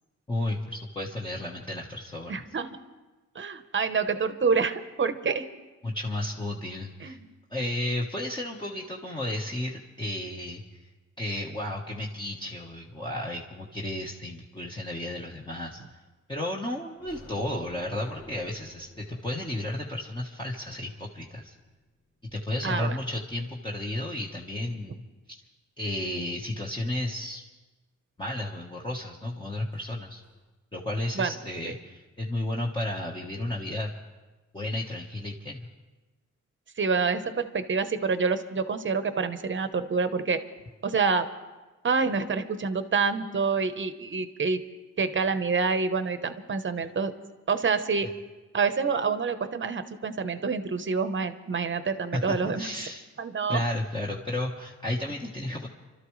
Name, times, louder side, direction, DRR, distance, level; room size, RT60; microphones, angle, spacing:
voice 1, 0.3-2.4 5.8-7.2 7.5-10.6 11.2-15.8 16.3-21.5 22.3-25.4 25.8-27.4 28.2-30.2 30.7-33.9 34.5-35.7 52.1-53.1 53.5-55.7, left 1 dB, 15° left, -3 dB, 1.3 m, -33 dB
voice 2, 2.3-2.8 3.3-5.5 7.0-7.3 22.6-23.0 31.1-31.3 31.6-31.7 36.8-40.4 40.8-41.3 41.8-44.6 45.0-47.1 47.5-48.1 48.5-52.7 53.2-53.6, right 5 dB, 40° right, 10 dB, 1.0 m, -27 dB
sound 1, 17.0-22.4 29.7-29.9 30.2-30.4, left 1 dB, 40° left, 2.8 m, -51 dB
30.0 x 13.0 x 3.2 m, 1.2 s
wide cardioid pair, 105°, 31 cm